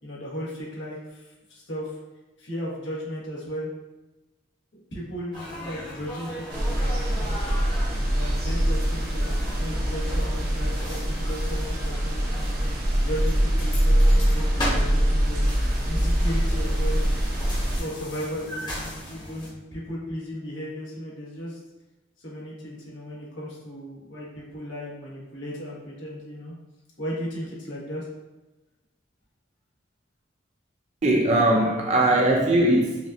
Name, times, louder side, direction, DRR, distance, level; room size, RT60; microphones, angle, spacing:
voice 1, 0.0-2.0 2.4-3.7 4.9-7.6 8.1-12.5 13.0-17.0 17.7-21.6 22.2-26.5 27.0-28.1, equal, 75° left, -5 dB, 1.3 m, -36 dB
sound 1, 5.3-19.5, equal, 25° left, 0.9 m, -38 dB
sound 2, 6.5-17.8, equal, 50° right, 0.7 m, -24 dB
voice 2, 31.0-33.1, right 1 dB, 35° right, 0 dB, 0.3 m, -20 dB
5.2 x 2.4 x 2.5 m, 1.1 s
head